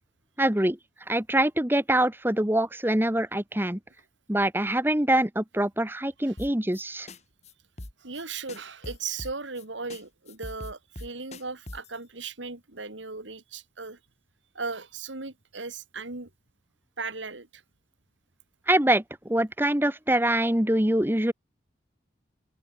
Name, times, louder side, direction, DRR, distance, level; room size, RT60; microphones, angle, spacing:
voice 1, 0.4-0.8 1.1-3.8 4.3-7.1 18.7-21.3, right 1 dB, 10° right, 1.2 m, -24 dB
sound 1, 6.4-6.8 7.1-7.2 7.4-7.5 7.8-8.2 8.5-9.6 9.9-10.0 10.3-12.0, left 1 dB, 35° left, 2.1 m, -41 dB
voice 2, 8.0-14.0 14.5-16.3 17.0-17.6, right 4 dB, 85° right, 2.6 m, -37 dB
open air
head